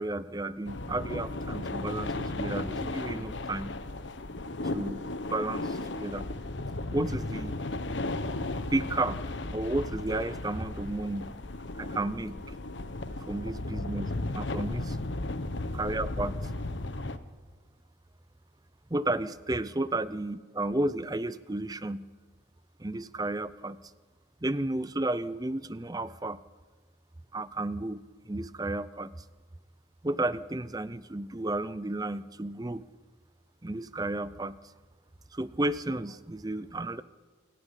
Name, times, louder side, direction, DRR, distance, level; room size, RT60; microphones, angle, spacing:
voice 1, 0.0-3.7 4.7-5.0 5.3-6.3 6.9-7.5 8.7-9.2 9.5-11.3 11.8-12.4 13.3-14.1 14.3-15.0 15.7-16.4 18.9-22.1 22.8-23.8 24.4-26.4 27.3-28.0 28.3-29.1 30.0-32.8 33.6-34.6 35.3-37.0, right 2 dB, 20° right, 16 dB, 0.6 m, -32 dB
sound 1, 0.6-17.2, left 2 dB, 65° left, 1.2 m, -35 dB
28.0 x 12.0 x 9.9 m, 1.4 s
head